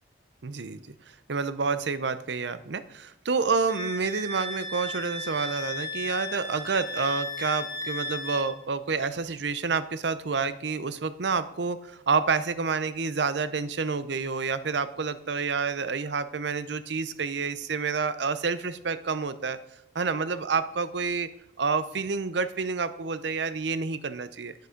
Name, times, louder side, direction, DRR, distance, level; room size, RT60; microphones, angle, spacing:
voice 1, 0.4-0.8 1.3-19.6 19.9-21.3 21.6-24.5, right 5 dB, 70° right, 14 dB, 0.6 m, -29 dB
Wind instrument woodwind instrument, 3.7-8.5, left 2 dB, 20° right, 3.4 m, -35 dB
9.7 x 9.4 x 5.1 m, 0.85 s
head